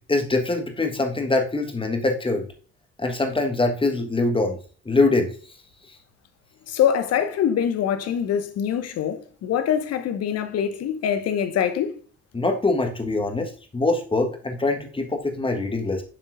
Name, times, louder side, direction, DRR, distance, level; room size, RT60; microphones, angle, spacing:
voice 1, 0.1-2.5 3.0-4.6 4.8-5.3 12.3-16.0, left 2 dB, 15° left, 1.3 m, -23 dB
voice 2, 6.7-12.0, left 9 dB, 45° left, 0.9 m, -24 dB
7.5 x 6.3 x 2.5 m
figure-of-eight pair, 45°, 35 cm